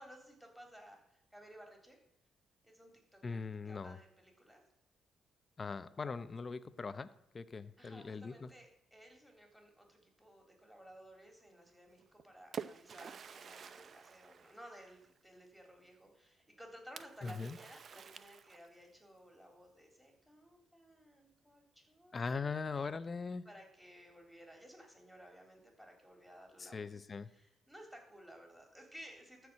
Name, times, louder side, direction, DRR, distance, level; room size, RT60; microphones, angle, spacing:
voice 1, 0.0-2.0 2.6-4.6 7.8-22.6 23.5-29.5, equal, ahead, 2 dB, 3.5 m, -57 dB
voice 2, 3.2-4.0 5.6-7.1 7.3-8.5 17.2-17.6 22.1-23.4 26.6-27.3, left 4 dB, 35° left, 13 dB, 0.7 m, -40 dB
Splash splatter, 12.0-15.2 17.0-18.9, right 6 dB, 50° right, 0.6 m, -49 dB
13.5 x 4.8 x 7.6 m, 0.81 s
cardioid pair, 90°, 0 cm